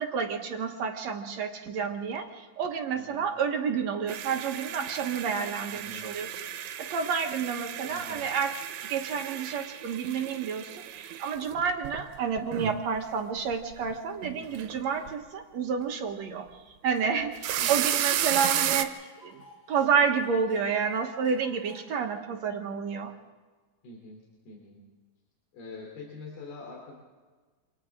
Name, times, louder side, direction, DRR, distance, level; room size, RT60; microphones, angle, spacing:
voice 1, 0.0-8.6 8.8-16.5 16.8-19.4 19.7-23.1, right 6 dB, 65° right, 4 dB, 1.9 m, -30 dB
voice 2, 2.9-3.3 5.7-6.1 7.9-8.3 14.3-14.7 17.6-17.9 23.8-24.8 25.5-27.0, left 2 dB, 85° left, -1 dB, 5.3 m, -45 dB
sound 1, 4.1-13.0 13.4-13.9 14.2-14.8 15.1-15.2 17.2-18.8, right 11 dB, 90° right, 2.9 m, -33 dB
Tick, 17.0-17.1 17.3-21.8, equal, 65° left, 5.2 m, -53 dB
28.0 x 26.5 x 3.7 m, 1.4 s
omnidirectional pair, 4.3 m